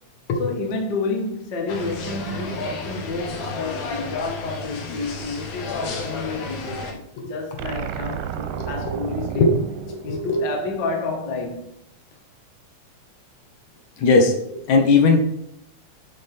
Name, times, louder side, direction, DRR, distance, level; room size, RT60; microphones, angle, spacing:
voice 1, 0.4-9.5 10.0-11.7, left 3 dB, 45° left, 1.5 m, -30 dB
sound 1, 1.7-6.9, left 3 dB, 90° left, 2.8 m, -32 dB
sound 2, 7.6-10.9, right 9 dB, 90° right, 2.0 m, -32 dB
voice 2, 8.6-8.9 9.4-9.5 9.9-10.4 14.0-15.2, left 3 dB, 70° left, 2.4 m, -19 dB
11.5 x 3.9 x 4.3 m
omnidirectional pair, 3.4 m